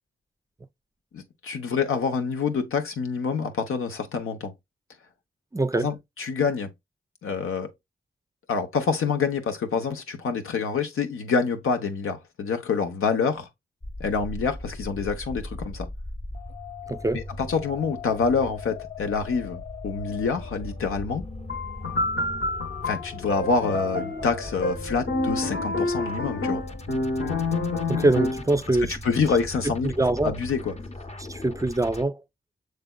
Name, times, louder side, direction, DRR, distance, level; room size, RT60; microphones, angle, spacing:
voice 1, 1.1-4.5 5.7-6.7 7.2-7.7 8.5-13.5 14.0-15.9 17.1-21.2 22.8-26.6 29.0-29.9 30.2-30.7, left 5 dB, 90° left, 0.8 m, -27 dB
voice 2, 5.5-5.9 16.9-17.2 27.9-29.0 29.8-30.4 31.3-32.2, right 2 dB, 15° right, 0.4 m, -23 dB
sound 1, 13.8-32.0, left 2 dB, 30° left, 0.7 m, -38 dB
sound 2, 21.5-28.6, left 2 dB, 60° left, 1.0 m, -28 dB
6.7 x 3.3 x 2.2 m
cardioid pair, 60°, 21 cm